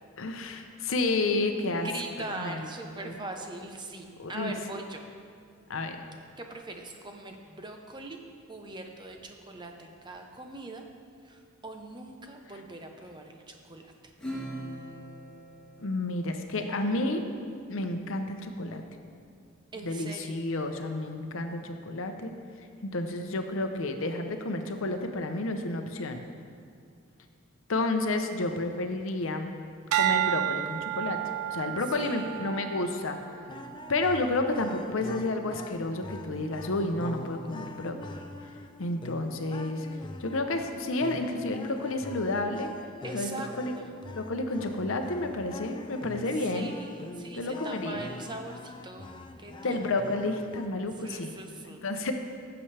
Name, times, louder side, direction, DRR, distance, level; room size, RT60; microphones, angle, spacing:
voice 1, 0.2-1.9 2.3-2.6 3.0-3.1 4.2-4.5 5.7-6.0 15.8-17.2 17.7-18.8 19.8-22.3 22.9-26.2 27.7-29.5 29.9-31.2 31.5-33.2 33.9-38.2 38.8-39.9 40.2-42.7 43.1-43.7 44.1-46.7 47.3-48.0 49.6-51.3 51.8-52.1, left 2 dB, 65° left, 6 dB, 0.7 m, -30 dB
voice 2, 1.8-5.0 6.4-8.2 8.5-10.8 11.2-13.9 19.7-20.4 32.0-32.8 43.0-43.5 43.8-44.0 46.3-49.9 51.0-51.8, right 2 dB, 20° right, 3 dB, 0.7 m, -41 dB
Acoustic guitar / Strum, 14.2-17.1, equal, 5° left, 2.5 m, -41 dB
sound 1, 29.9-34.4 34.9-35.3, right 12 dB, 80° right, 0.4 m, -31 dB
sound 2, 33.5-50.7, left 2 dB, 20° left, 0.3 m, -44 dB
15.5 x 6.9 x 3.3 m, 2.3 s
head